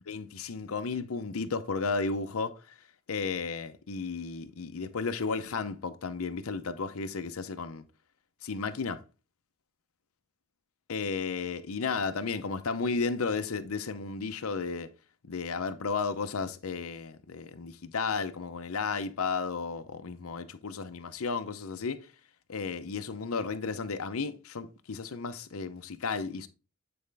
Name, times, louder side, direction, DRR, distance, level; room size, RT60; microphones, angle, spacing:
voice 1, 0.1-2.6 3.1-7.8 8.4-9.0 10.9-14.9 15.2-22.1 22.5-26.5, left 4 dB, 85° left, 0.7 m, -33 dB
8.8 x 4.3 x 3.4 m
head